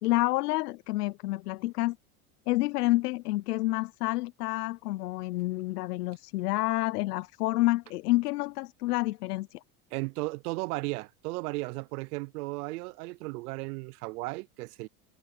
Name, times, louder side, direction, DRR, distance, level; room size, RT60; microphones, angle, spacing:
voice 1, 0.0-2.0 2.5-9.6, left 19 dB, 85° left, 0.6 m, -29 dB
voice 2, 9.9-14.9, right 24 dB, 75° right, 0.6 m, -35 dB
supercardioid pair, 110°, 46 cm